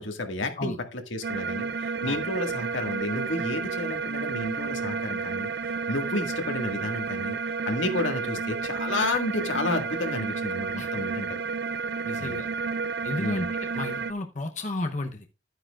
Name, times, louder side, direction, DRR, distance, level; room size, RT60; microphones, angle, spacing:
voice 1, 0.0-5.5 5.9-7.4 7.7-11.4 12.2-12.4 13.2-13.5, left 2 dB, 80° left, 1.8 m, -31 dB
sound 1, 1.2-14.1, right 5 dB, 55° right, 0.4 m, -31 dB
voice 2, 12.0-12.5 13.0-15.3, left 2 dB, 40° left, 0.8 m, -33 dB
11.5 x 9.2 x 2.4 m
head